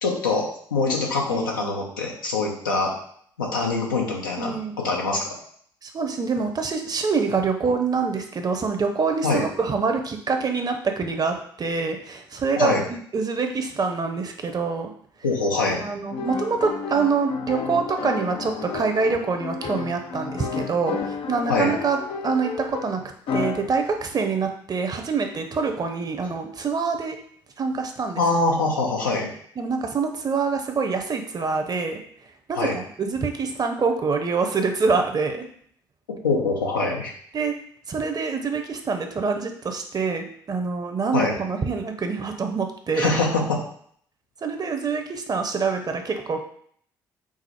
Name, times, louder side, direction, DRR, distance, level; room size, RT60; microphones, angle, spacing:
voice 1, 0.0-2.9 3.4-4.6 4.8-5.3 9.2-9.4 12.6-12.8 15.2-15.8 21.5-21.7 28.2-29.3 32.6-32.8 36.2-37.1 41.1-41.3 42.9-43.6, left 3 dB, 90° left, -1 dB, 0.7 m, -23 dB
voice 2, 1.3-1.8 4.4-4.8 5.8-14.9 15.8-23.0 23.3-27.2 27.6-28.2 29.6-32.0 32.5-35.5 37.3-37.5 37.9-43.1 44.4-46.4, right 4 dB, 40° right, 5 dB, 0.8 m, -25 dB
sound 1, 16.1-23.8, left 5 dB, 60° left, 0.5 m, -31 dB
4.8 x 2.0 x 4.3 m, 0.63 s
hypercardioid pair, 50°, 10 cm